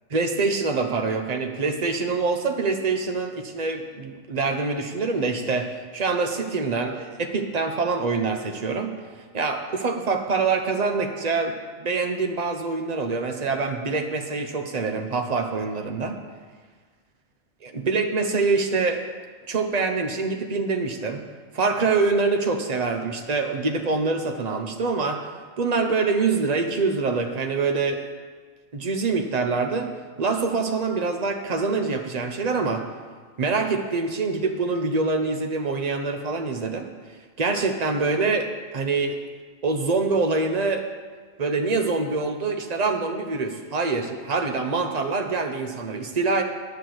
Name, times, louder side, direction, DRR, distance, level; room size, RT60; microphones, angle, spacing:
voice 1, 0.1-8.9 9.3-16.2 17.6-19.0 19.5-21.2 21.5-25.2 25.6-28.0 28.7-29.9 30.2-32.8 33.4-36.9 37.4-39.2 39.6-40.8 41.4-46.4, right 4 dB, 35° right, 4 dB, 1.0 m, -25 dB
10.5 x 6.7 x 7.9 m, 1.5 s
omnidirectional pair, 1.3 m